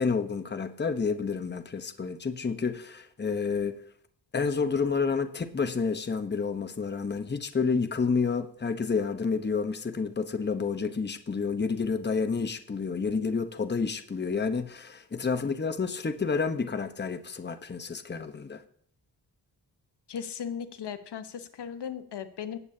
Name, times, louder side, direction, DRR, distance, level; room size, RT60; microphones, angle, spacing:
voice 1, 0.0-3.7 4.3-18.6, left 5 dB, 25° left, 8 dB, 1.0 m, -29 dB
voice 2, 20.1-22.6, left 8 dB, 70° left, 9 dB, 1.1 m, -37 dB
18.0 x 8.5 x 2.8 m, 0.63 s
wide cardioid pair, 100°, 42 cm